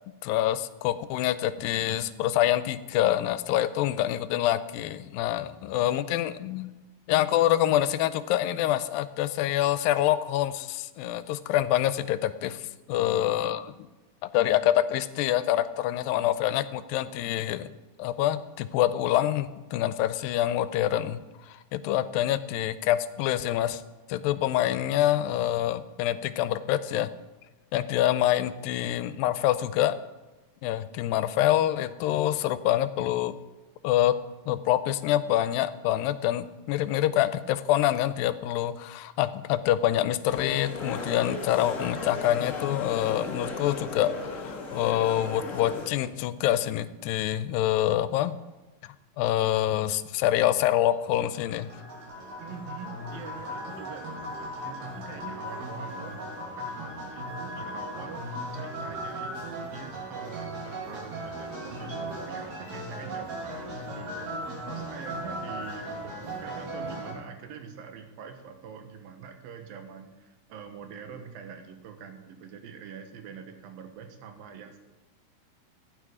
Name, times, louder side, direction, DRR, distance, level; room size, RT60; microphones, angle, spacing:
voice 1, 0.2-6.8 7.1-13.7 14.2-17.7 18.0-23.8 24.1-27.1 27.7-30.0 30.6-33.4 33.8-34.2 34.5-48.4 49.2-51.7, left 12 dB, 85° left, 13 dB, 2.3 m, -26 dB
sound 1, 40.3-45.9, left 3 dB, 55° left, 0.8 m, -36 dB
sound 2, 50.9-67.1, right 1 dB, 55° right, 4.1 m, -37 dB
voice 2, 52.4-74.8, right 7 dB, 85° right, 6 dB, 3.0 m, -44 dB
15.0 x 9.5 x 4.9 m, 1.1 s
omnidirectional pair, 4.0 m